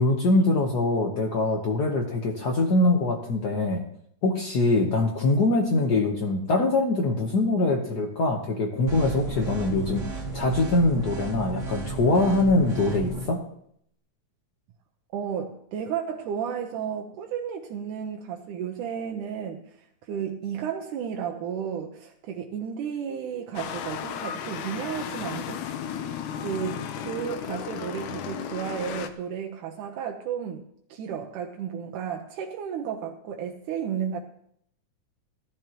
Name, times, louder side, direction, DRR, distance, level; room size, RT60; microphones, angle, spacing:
voice 1, 0.0-3.8 4.2-13.4, left 2 dB, 70° left, 1 dB, 0.9 m, -23 dB
sound 1, 8.9-13.3, right 2 dB, 25° right, 2.9 m, -34 dB
voice 2, 15.1-30.6 30.9-34.2, right 8 dB, 90° right, 1 dB, 2.5 m, -33 dB
sound 2, 23.6-29.1, left 9 dB, 85° left, 2.4 m, -34 dB
17.5 x 12.5 x 3.0 m, 0.69 s
omnidirectional pair, 3.5 m